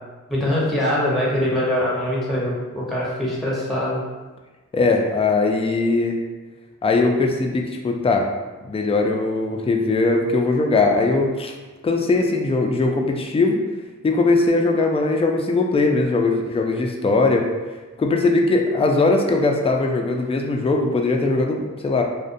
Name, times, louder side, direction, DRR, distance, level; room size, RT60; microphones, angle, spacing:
voice 1, 0.3-4.0, left 1 dB, ahead, -5 dB, 0.8 m, -23 dB
voice 2, 4.7-6.2 6.8-8.3 8.6-11.5 11.8-13.6 14.0-17.5 18.0-22.0, left 3 dB, 20° left, 2 dB, 0.3 m, -20 dB
2.5 x 2.1 x 2.5 m, 1.2 s
cardioid pair, 45°, 32 cm